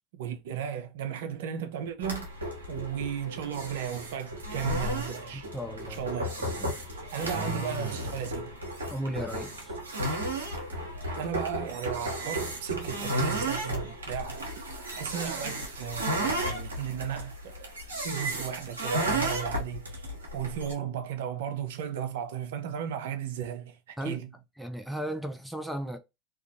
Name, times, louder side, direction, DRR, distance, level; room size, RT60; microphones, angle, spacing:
voice 1, 0.1-2.3 2.7-5.5 5.9-6.3 6.8-8.6 11.2-14.5 15.0-17.7 18.0-20.1 20.3-24.3, right 9 dB, 65° right, 0.5 m, -35 dB
sound 1, 2.0-20.7, right 1 dB, 85° right, 0.9 m, -33 dB
voice 2, 5.5-6.1 6.4-6.7 8.9-9.7 24.0-24.2 24.6-26.0, right 1 dB, ahead, 0.6 m, -35 dB
2.4 x 2.4 x 2.6 m
hypercardioid pair, 80°, 0 cm